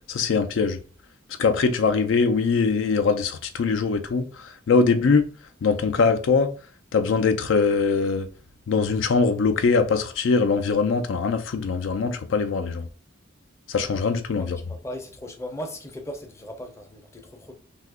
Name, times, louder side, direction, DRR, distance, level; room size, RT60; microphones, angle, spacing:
voice 1, 0.1-0.8 1.4-5.3 5.6-6.5 6.9-8.3 8.7-12.9 13.7-14.6, left 4 dB, 80° left, 0.4 m, -22 dB
voice 2, 14.4-17.5, equal, 15° left, 0.5 m, -38 dB
2.7 x 2.4 x 3.5 m
head